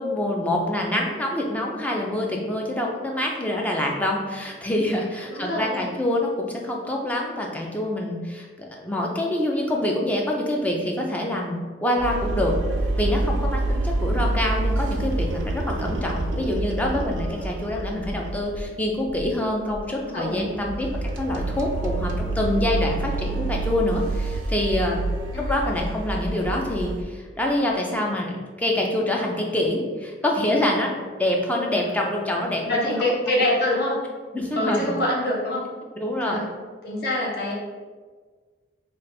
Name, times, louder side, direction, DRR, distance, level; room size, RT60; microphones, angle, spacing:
voice 1, 0.0-12.6 13.0-20.9 21.2-25.0 25.4-30.9 31.2-32.8 34.3-34.9 36.0-36.4, left 1 dB, 10° left, -1 dB, 0.4 m, -26 dB
voice 2, 5.3-5.8 14.1-14.3 19.9-20.6 25.3-25.6 31.6-31.8 32.7-34.0 34.5-35.7 36.2-36.4 36.8-37.5, left 1 dB, 55° left, -4 dB, 0.8 m, -25 dB
sound 1, 12.0-18.7 19.0-19.3 19.7-19.8 20.3-27.0, right 2 dB, 85° right, 0.4 m, -27 dB
3.3 x 2.4 x 4.1 m, 1.5 s
head